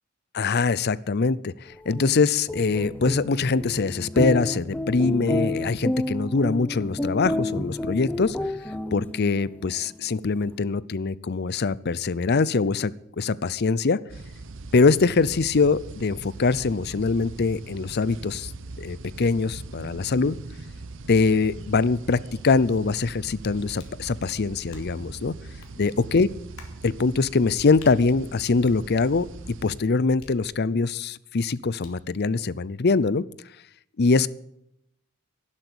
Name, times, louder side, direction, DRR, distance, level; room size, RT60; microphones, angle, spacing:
voice 1, 0.3-1.5 1.9-8.4 8.9-12.9 13.2-14.0 14.7-18.5 18.8-20.4 21.1-25.3 25.8-26.3 26.8-29.3 29.6-33.2 34.0-34.3, left 4 dB, 50° left, 20 dB, 0.6 m, -23 dB
sound 1, 1.8-9.4, left 1 dB, 5° left, 0.7 m, -30 dB
sound 2, 14.1-29.8, right 2 dB, 60° right, 0.9 m, -41 dB
sound 3, 23.8-24.1 24.7-25.1 25.6-25.8 26.6-26.8 27.8-28.0 28.6-29.3 30.2-30.9 31.8-32.1, left 4 dB, 80° left, 2.9 m, -50 dB
12.0 x 11.5 x 8.2 m, 0.78 s
head